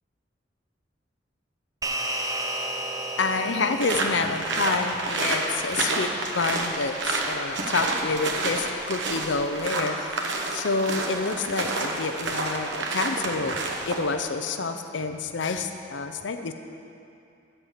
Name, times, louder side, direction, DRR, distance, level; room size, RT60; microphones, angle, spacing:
sound 1, 1.8-6.5, right 1 dB, 20° right, 0.6 m, -34 dB
voice 1, 3.2-6.1 6.3-10.1 10.5-13.6 13.9-16.5, left 4 dB, 75° left, 7 dB, 0.6 m, -28 dB
sound 2, 3.8-14.1, right 3 dB, 75° right, 1.1 m, -29 dB
13.5 x 4.6 x 8.2 m, 2.6 s
head